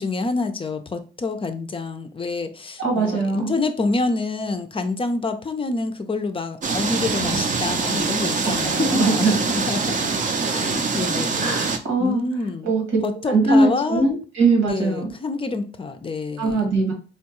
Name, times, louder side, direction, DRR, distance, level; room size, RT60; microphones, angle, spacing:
voice 1, 0.0-10.0 10.5-11.6 12.0-12.7 13.0-14.2 14.6-16.8, left 3 dB, 25° left, 7 dB, 0.5 m, -27 dB
voice 2, 2.8-3.5 8.4-9.3 11.4-12.2 12.6-13.0 13.3-15.1 16.4-16.9, right 3 dB, 85° right, 1 dB, 1.6 m, -21 dB
sound 1, 6.6-11.8, right 4 dB, 40° right, 0.6 m, -24 dB
4.4 x 2.2 x 2.9 m, 0.36 s
cardioid pair, 90°, 20 cm